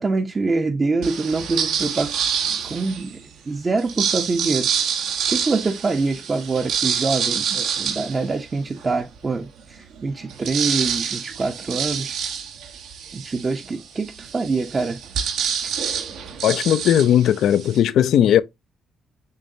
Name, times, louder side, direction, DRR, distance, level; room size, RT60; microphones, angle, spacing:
voice 1, 0.0-4.7 5.3-12.2 13.1-15.0, right 3 dB, 30° right, 0.6 m, -25 dB
sound 1, 1.0-3.2 3.8-9.0 9.4-9.5 9.8-17.8, right 7 dB, 85° right, 1.1 m, -27 dB
voice 2, 16.4-18.4, left 10 dB, 75° left, 0.4 m, -17 dB
6.6 x 3.0 x 2.7 m
cardioid pair, 90°, 0 cm